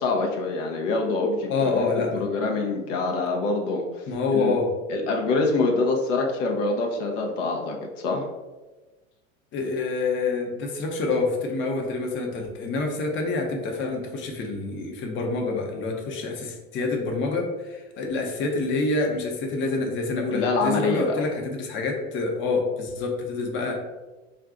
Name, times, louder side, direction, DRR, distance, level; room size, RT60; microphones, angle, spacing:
voice 1, 0.0-4.0 4.3-4.5 4.9-8.2 20.3-21.1, left 3 dB, 70° left, 1 dB, 0.7 m, -25 dB
voice 2, 1.5-2.3 4.1-4.7 9.5-23.8, left 3 dB, 30° left, 1 dB, 0.6 m, -27 dB
2.5 x 2.3 x 3.6 m, 1.2 s
hypercardioid pair, 95°, 38 cm